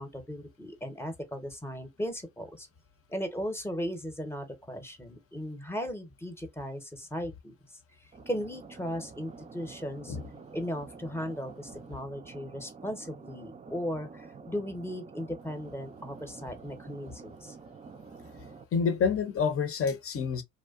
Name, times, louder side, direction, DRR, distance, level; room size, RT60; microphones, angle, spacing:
voice 1, 0.0-2.7 3.1-7.5 8.0-10.2 10.5-17.6, equal, 10° left, 0.7 m, -37 dB
sound 1, 8.1-18.6, right 4 dB, 25° right, 0.3 m, -48 dB
voice 2, 18.7-20.4, left 6 dB, 45° left, 0.6 m, -28 dB
2.6 x 2.1 x 2.3 m
cardioid pair, 75°, 31 cm